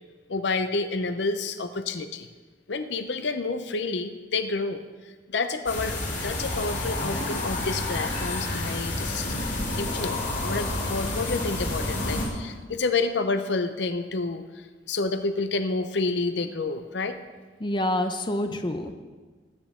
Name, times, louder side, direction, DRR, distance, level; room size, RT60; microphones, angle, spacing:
voice 1, 0.3-2.3 2.7-4.8 5.3-9.3 9.7-17.2, left 3 dB, 70° left, 9 dB, 0.7 m, -29 dB
sound 1, 5.7-12.3, left 2 dB, 90° left, 3.7 m, -29 dB
voice 2, 17.6-18.9, left 1 dB, 25° left, 7 dB, 0.7 m, -27 dB
20.0 x 9.4 x 3.7 m, 1.4 s
head